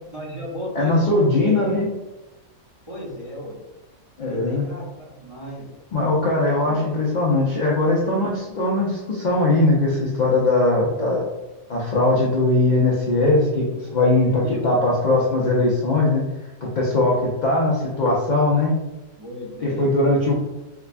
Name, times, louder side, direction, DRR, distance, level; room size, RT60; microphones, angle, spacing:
voice 1, 0.1-1.6 2.9-3.6 4.2-5.7 6.5-6.9 13.9-14.7 19.2-20.3, equal, 30° right, -4 dB, 0.6 m, -35 dB
voice 2, 0.7-1.9 4.2-4.6 5.9-11.3 11.7-16.2 16.6-18.8 19.6-20.3, left 2 dB, 60° left, -4 dB, 0.4 m, -20 dB
4.8 x 2.2 x 2.5 m, 1.0 s
omnidirectional pair, 1.5 m